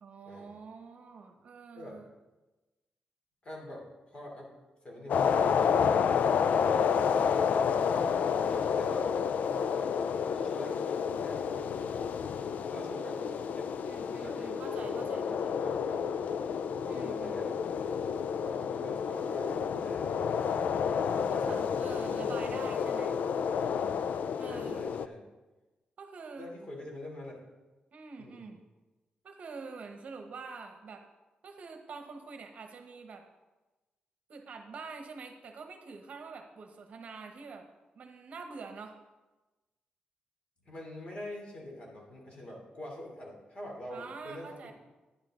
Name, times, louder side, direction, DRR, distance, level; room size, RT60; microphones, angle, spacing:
voice 1, 0.0-2.1 13.8-15.6 16.9-17.4 21.3-23.1 24.4-24.9 26.0-26.5 27.9-28.6 29.2-31.0 31.4-33.2 34.3-37.6 37.9-39.0 43.9-44.7, right 4 dB, 55° right, 5 dB, 1.0 m, -46 dB
voice 2, 3.4-4.5 4.8-6.3 7.5-9.6 10.3-11.9 12.6-13.7 13.9-15.0 15.6-16.0 16.7-17.6 18.3-20.4 20.9-21.7 22.4-22.6 24.4-25.3 26.4-27.3 28.2-28.5 40.6-44.7, left 1 dB, 40° left, -2 dB, 3.1 m, -45 dB
sound 1, 5.1-25.1, left 7 dB, 65° left, 0.4 m, -30 dB
10.5 x 10.5 x 3.8 m, 1.1 s
wide cardioid pair, 155°, 3 cm